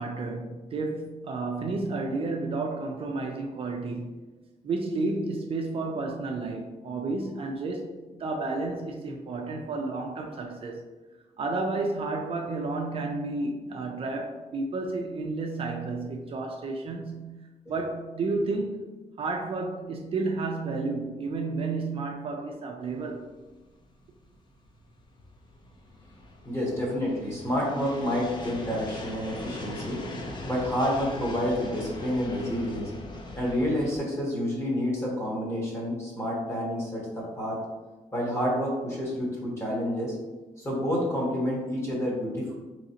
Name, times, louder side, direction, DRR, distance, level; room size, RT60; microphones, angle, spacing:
voice 1, 0.0-4.2 4.6-10.8 11.4-17.4 17.7-18.8 19.2-23.3, right 3 dB, 45° right, 2 dB, 0.4 m, -31 dB
sound 1, 23.0-34.0, left 1 dB, 35° left, 0.6 m, -41 dB
voice 2, 26.4-30.0 30.5-32.9 33.3-37.6 38.1-40.1 40.6-42.5, equal, 20° left, -4 dB, 1.2 m, -29 dB
3.9 x 3.1 x 2.8 m, 1.2 s
wide cardioid pair, 150°, 13 cm